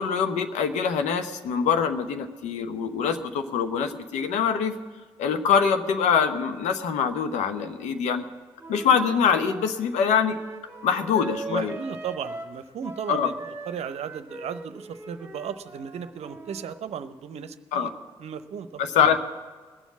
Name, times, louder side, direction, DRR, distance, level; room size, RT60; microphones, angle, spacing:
voice 1, 0.0-4.8 5.2-8.2 8.7-10.4 10.8-11.8 13.1-13.3 17.7-17.9 18.8-19.2, left 7 dB, 70° left, 8 dB, 0.9 m, -24 dB
Wind instrument woodwind instrument, 8.6-12.6 12.8-16.8, right 2 dB, 20° right, 1.6 m, -41 dB
voice 2, 11.5-13.3 13.7-17.9 18.2-18.8, right 7 dB, 60° right, 11 dB, 0.7 m, -35 dB
20.0 x 7.2 x 7.2 m, 1.5 s
hypercardioid pair, 45°, 13 cm